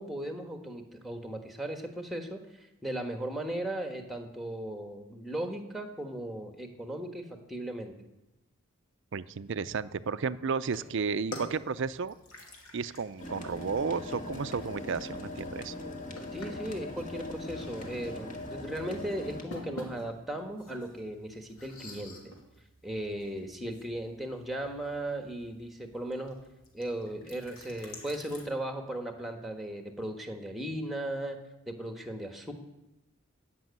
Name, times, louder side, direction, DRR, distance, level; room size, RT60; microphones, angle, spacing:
voice 1, 0.0-7.9 16.3-22.3 22.8-26.4 26.7-31.4 31.7-32.5, right 1 dB, ahead, 4 dB, 1.3 m, -37 dB
voice 2, 9.1-12.1 12.7-15.7, right 5 dB, 55° right, 14 dB, 0.5 m, -33 dB
sound 1, 10.6-28.4, left 1 dB, 75° left, 2.6 m, -49 dB
sound 2, 13.2-19.4, left 1 dB, 35° left, 1.9 m, -40 dB
15.5 x 6.2 x 9.5 m, 0.95 s
head